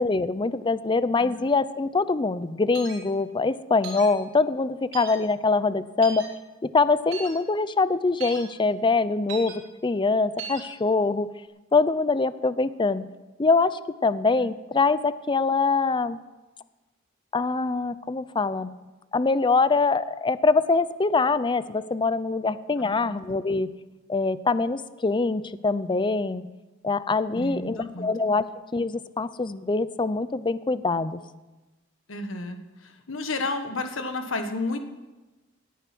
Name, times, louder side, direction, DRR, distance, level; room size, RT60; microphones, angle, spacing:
voice 1, 0.0-6.3 6.6-11.3 11.7-13.1 13.4-16.2 17.3-18.7 19.1-23.7 24.1-26.5 26.8-28.5 28.7-31.2, left 3 dB, 25° left, 15 dB, 0.5 m, -24 dB
sound 1, 2.7-3.0 3.8-4.1 4.9-5.2 6.0-6.3 7.1-7.3 8.2-8.4 9.3-9.5 10.4-10.6, right 5 dB, 75° right, 3.5 m, -37 dB
voice 2, 22.8-23.1 27.3-28.1 32.1-34.8, left 2 dB, 70° left, 6 dB, 1.5 m, -32 dB
18.0 x 10.5 x 6.1 m, 1.2 s
head